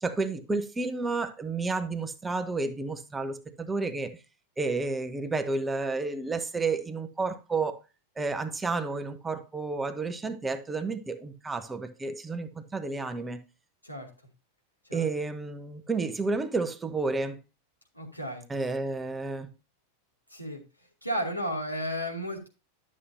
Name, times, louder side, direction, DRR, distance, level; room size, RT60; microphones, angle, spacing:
voice 1, 0.0-4.1 4.6-7.8 8.2-13.4 14.9-17.4 18.5-19.5, right 3 dB, 10° right, 1.0 m, -31 dB
voice 2, 17.9-18.5 20.3-20.6 21.0-22.5, equal, 90° left, 2.7 m, -33 dB
11.0 x 7.4 x 2.8 m
figure-of-eight pair, 90°, 0 cm